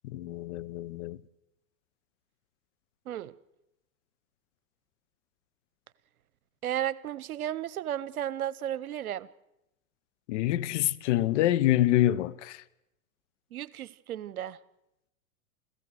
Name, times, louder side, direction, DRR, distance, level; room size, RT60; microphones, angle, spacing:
voice 1, 0.0-1.2 10.3-12.6, left 14 dB, 55° left, 1.0 m, -26 dB
voice 2, 6.6-9.3 13.5-14.6, right 11 dB, 75° right, 0.9 m, -34 dB
28.5 x 16.0 x 6.4 m
hypercardioid pair, 100°, 43 cm